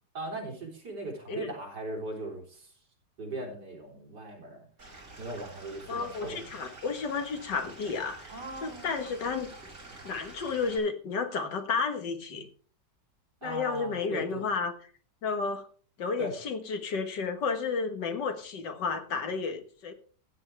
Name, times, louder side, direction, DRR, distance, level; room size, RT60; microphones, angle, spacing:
voice 1, 0.1-2.7 3.2-4.7 5.2-6.5 8.3-8.9 9.9-10.0 13.4-14.4 16.2-16.3, right 2 dB, 70° right, 0 dB, 4.3 m, -39 dB
Stream / Liquid, 4.8-10.8, right 2 dB, 45° right, 6.1 m, -48 dB
voice 2, 5.9-8.3 8.6-9.5 10.0-12.5 13.4-14.7 15.2-15.7 16.0-19.9, left 5 dB, 80° left, 6 dB, 2.2 m, -32 dB
15.0 x 9.3 x 3.4 m, 0.43 s
omnidirectional pair, 1.9 m